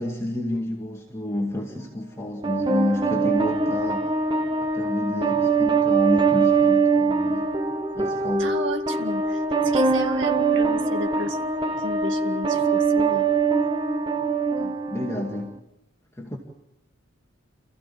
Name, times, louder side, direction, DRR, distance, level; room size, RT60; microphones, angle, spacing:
voice 1, 0.0-4.1 4.6-7.5 7.9-8.5 14.6-15.6 16.2-16.4, left 1 dB, 15° left, -1 dB, 2.2 m, -29 dB
sound 1, 2.4-15.5, right 4 dB, 25° right, 1.1 m, -23 dB
voice 2, 8.4-11.4 11.8-13.3, right 1 dB, 60° right, 5 dB, 2.1 m, -33 dB
28.5 x 15.0 x 8.6 m, 0.93 s
head